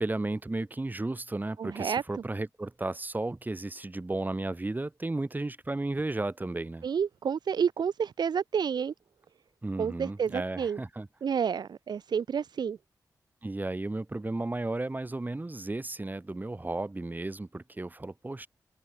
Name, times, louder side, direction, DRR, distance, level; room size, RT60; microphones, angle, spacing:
voice 1, 0.0-6.9 9.6-11.1 13.4-18.5, right 2 dB, 25° right, 4.4 m, -34 dB
voice 2, 1.6-2.0 6.8-8.9 9.8-10.8 11.2-12.8, right 7 dB, 80° right, 1.3 m, -29 dB
cardioid pair, 70°, 7 cm